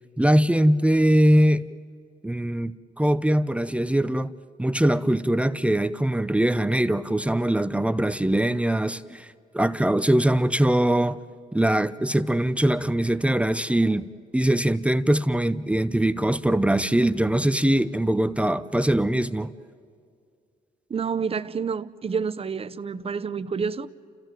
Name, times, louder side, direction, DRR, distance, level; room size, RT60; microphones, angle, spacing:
voice 1, 0.2-1.7 2.2-4.3 4.6-11.2 11.5-14.1 14.3-19.5, right 1 dB, 10° right, 0.6 m, -22 dB
voice 2, 20.9-23.9, right 6 dB, 40° right, 0.8 m, -28 dB
29.5 x 14.5 x 9.1 m
cardioid pair, 85°, 16 cm